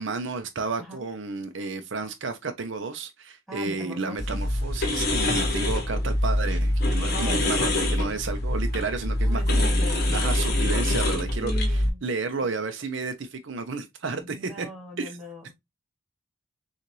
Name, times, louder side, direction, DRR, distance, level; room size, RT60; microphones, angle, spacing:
voice 1, 0.0-14.7 15.0-15.2, right 4 dB, 60° right, 0.6 m, -32 dB
voice 2, 3.5-4.4 7.1-8.2 9.2-10.1 11.4-12.0 14.2-15.5, equal, ahead, 2.2 m, -40 dB
sound 1, 4.2-11.9, left 1 dB, 50° left, 1.2 m, -24 dB
6.6 x 2.5 x 3.0 m
head